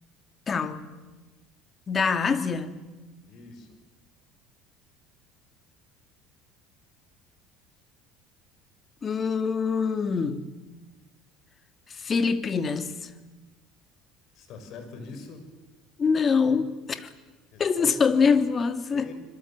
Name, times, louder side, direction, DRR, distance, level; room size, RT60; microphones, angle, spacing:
voice 1, 0.5-0.9 1.9-2.8 9.0-10.5 11.9-13.1 16.0-17.1 17.6-19.1, left 5 dB, 30° left, 2.1 m, -24 dB
voice 2, 3.3-3.8 14.3-15.5 17.5-18.3 18.9-19.1, left 5 dB, 60° left, 5.9 m, -43 dB
25.5 x 22.5 x 7.5 m
supercardioid pair, 95°, 0 cm